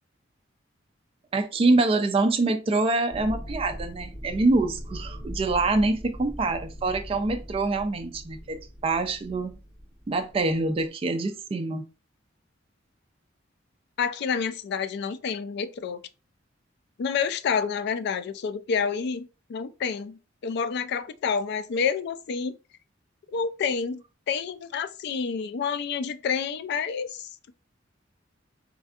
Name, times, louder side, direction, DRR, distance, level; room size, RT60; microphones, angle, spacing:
voice 1, 1.3-9.6 10.1-11.8, right 2 dB, 30° right, 0.3 m, -25 dB
sound 1, 3.1-10.9, equal, 15° left, 1.4 m, -40 dB
voice 2, 14.0-16.0 17.0-22.6 23.3-27.3, left 6 dB, 60° left, 0.3 m, -29 dB
3.2 x 2.6 x 2.4 m
head